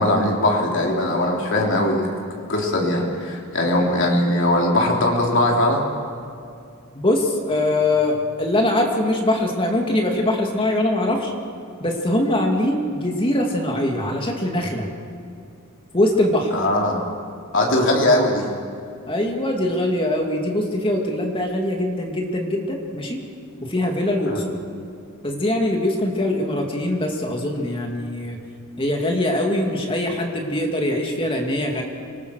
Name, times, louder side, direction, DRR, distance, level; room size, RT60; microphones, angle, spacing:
voice 1, 0.0-2.1 2.5-5.8 16.5-17.0 17.5-18.4 24.3-24.4, left 1 dB, 55° left, -1 dB, 3.3 m, -20 dB
voice 2, 6.9-11.3 11.8-14.9 15.9-16.5 19.1-23.2 23.6-24.6 25.2-28.4 28.8-31.8, left 1 dB, 25° left, 1 dB, 2.3 m, -22 dB
26.5 x 19.0 x 6.4 m, 2.4 s
head